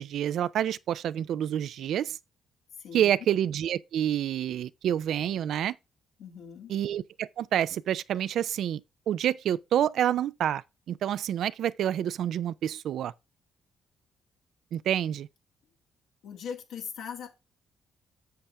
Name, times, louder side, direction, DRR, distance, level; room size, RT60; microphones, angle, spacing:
voice 1, 0.0-2.2 2.9-5.7 6.7-8.8 9.1-13.1 14.7-15.3, right 10 dB, 70° right, 0.4 m, -28 dB
voice 2, 2.8-3.1 6.2-6.7 16.2-17.3, left 7 dB, 85° left, 2.1 m, -40 dB
7.6 x 7.0 x 3.4 m
cardioid pair, 90°, 0 cm